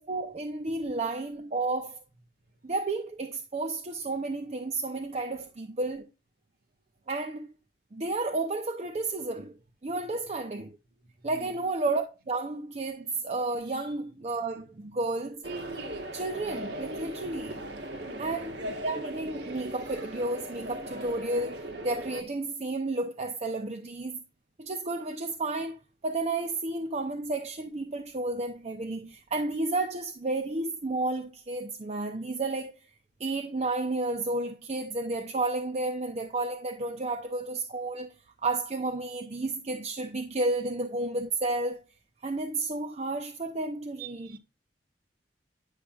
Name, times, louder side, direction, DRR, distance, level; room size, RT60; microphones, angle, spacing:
voice 1, 0.0-2.0 2.6-6.0 7.1-7.5 7.9-9.5 9.8-10.7 11.2-15.4 16.1-17.7 18.2-24.2 24.6-32.7 33.2-38.1 38.4-41.8 42.2-44.3, right 2 dB, 40° right, 0.6 m, -32 dB
voice 2, 4.9-5.5 11.0-11.7 13.6-14.0 18.0-18.3 44.0-44.4, right 5 dB, 60° right, 1.6 m, -49 dB
sound 1, 15.4-22.2, right 1 dB, 75° right, 1.2 m, -38 dB
9.9 x 6.2 x 2.3 m
head